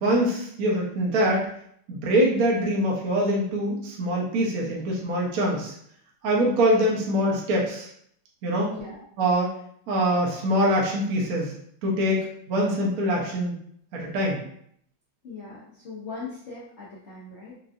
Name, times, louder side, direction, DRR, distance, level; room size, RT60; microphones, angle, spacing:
voice 1, 0.0-1.5 1.9-5.7 6.2-7.9 8.4-8.7 9.2-9.5 9.9-11.5 11.8-13.5 13.9-14.4, equal, 60° right, -3 dB, 0.9 m, -24 dB
voice 2, 8.7-9.1 15.2-17.6, left 4 dB, 70° left, -7 dB, 0.6 m, -39 dB
4.6 x 2.4 x 2.5 m, 0.68 s
omnidirectional pair, 2.3 m